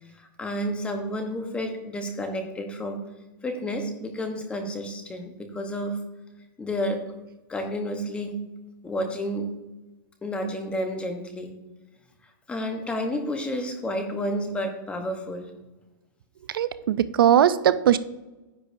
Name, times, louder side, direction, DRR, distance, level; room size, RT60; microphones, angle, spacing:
voice 1, 0.2-3.0 3.4-6.0 6.6-7.0 7.5-8.4 8.8-9.5 10.2-11.6 12.5-15.5, equal, 10° left, 5 dB, 1.0 m, -30 dB
voice 2, 16.5-18.0, right 10 dB, 85° right, 14 dB, 0.5 m, -19 dB
10.0 x 8.6 x 2.6 m, 1.1 s
hypercardioid pair, 155°, 11 cm